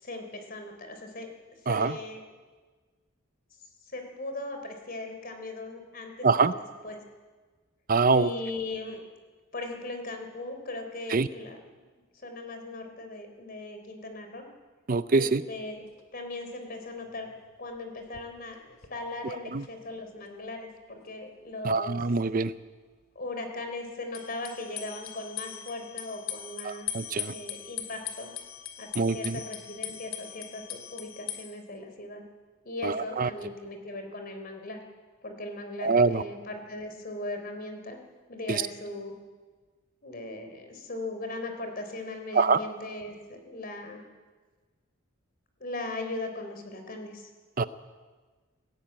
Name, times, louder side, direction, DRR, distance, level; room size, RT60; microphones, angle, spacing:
voice 1, 0.0-1.3 1.6-2.2 3.8-7.0 8.1-9.0 9.5-14.5 15.1-15.8 16.1-17.3 17.6-18.6 18.9-22.0 23.2-26.9 27.3-28.3 28.8-32.2 32.6-34.8 35.2-38.0 38.3-39.1 40.0-44.1 45.6-47.3, left 2 dB, 45° left, 5 dB, 3.8 m, -38 dB
voice 2, 7.9-8.3 11.1-11.3 14.9-15.4 19.5-19.6 21.6-22.5 26.6-27.3 29.0-29.4 32.8-33.3 35.8-36.2 38.5-38.6 42.3-42.6 47.6-47.7, right 4 dB, 45° right, 13 dB, 0.6 m, -24 dB
sound 1, 15.6-15.7 16.0-16.1 16.3-16.4 17.1-17.5 17.8-19.7 20.0-20.1 24.1-31.4, left 11 dB, 90° left, 2.6 m, -40 dB
18.0 x 17.5 x 8.9 m, 1.4 s
head